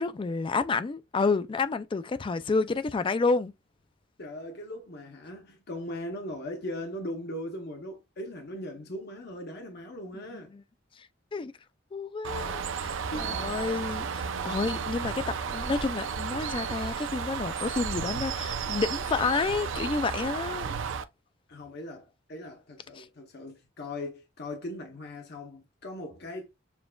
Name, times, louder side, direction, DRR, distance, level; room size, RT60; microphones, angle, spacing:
voice 1, 0.0-3.5 10.3-10.6 11.3-11.5 11.9-20.8 23.0-23.1, left 4 dB, 25° left, 0.3 m, -30 dB
voice 2, 4.2-10.5 13.1-13.4 21.5-26.5, left 1 dB, 55° left, 0.8 m, -39 dB
Bird, 12.2-21.0, right 6 dB, 70° right, 0.4 m, -33 dB
7.0 x 2.4 x 2.2 m
head